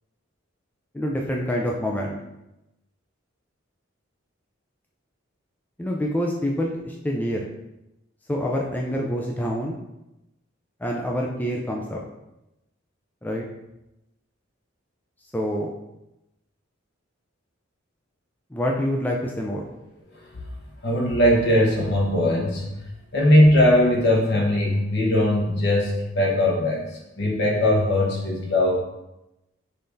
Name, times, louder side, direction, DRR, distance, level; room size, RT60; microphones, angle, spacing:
voice 1, 0.9-2.1 5.8-7.5 8.3-9.8 10.8-12.0 13.2-13.4 15.3-15.7 18.5-19.6, equal, 10° left, -1 dB, 0.3 m, -26 dB
voice 2, 20.8-22.7 23.1-28.8, left 1 dB, 55° left, -3 dB, 1.1 m, -20 dB
5.5 x 3.3 x 2.6 m, 0.92 s
head